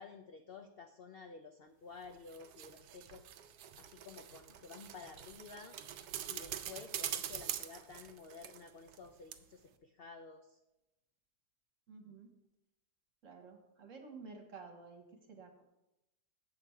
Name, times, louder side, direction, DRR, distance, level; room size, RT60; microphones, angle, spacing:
voice 1, 0.0-3.3 3.7-5.8 6.3-10.6, left 5 dB, 90° left, 6 dB, 0.5 m, -52 dB
sound 1, 2.0-9.0 9.3-9.4, right 11 dB, 80° right, 1.1 m, -44 dB
voice 2, 11.9-12.3 13.2-15.6, right 4 dB, 50° right, 4 dB, 1.4 m, -52 dB
7.7 x 7.5 x 4.5 m, 0.91 s
omnidirectional pair, 1.7 m